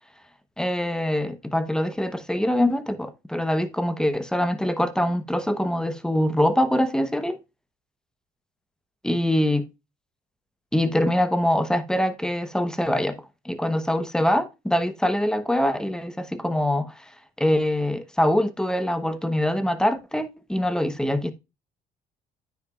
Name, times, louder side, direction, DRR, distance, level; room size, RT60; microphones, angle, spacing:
voice 1, 0.6-7.4 9.0-9.6 10.7-13.2 13.4-17.0 17.4-21.3, left 1 dB, 5° left, 1.1 m, -24 dB
9.3 x 7.0 x 2.4 m
cardioid pair, 110°, 17 cm